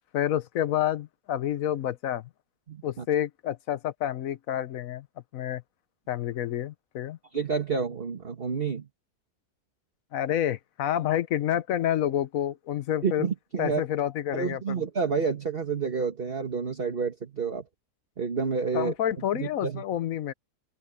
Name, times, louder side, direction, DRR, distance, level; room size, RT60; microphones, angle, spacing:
voice 1, 0.1-2.3 2.8-5.1 5.3-5.6 6.1-7.2 10.1-13.3 13.6-14.8 18.7-20.3, left 11 dB, 65° left, 1.2 m, -28 dB
voice 2, 2.7-3.0 7.3-8.9 13.0-13.8 14.3-17.6 18.2-19.8, right 5 dB, 35° right, 1.8 m, -29 dB
open air
omnidirectional pair, 1.7 m